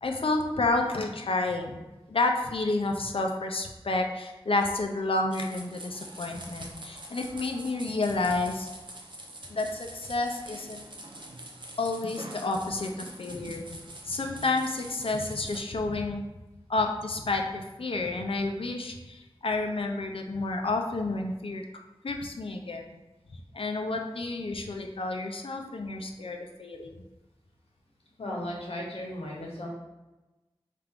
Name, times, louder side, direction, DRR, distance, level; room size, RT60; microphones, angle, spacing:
voice 1, 0.0-1.8 2.1-8.7 9.5-10.8 11.8-13.7 14.1-16.2 16.7-21.6 22.0-22.8 23.5-26.9, left 2 dB, 65° left, 3 dB, 0.5 m, -30 dB
sound 1, 5.3-15.6, right 1 dB, 55° right, 0.7 m, -45 dB
voice 2, 28.2-29.7, left 1 dB, 85° left, -2 dB, 1.0 m, -36 dB
4.4 x 2.5 x 3.5 m, 1.1 s
wide cardioid pair, 50°, 10 cm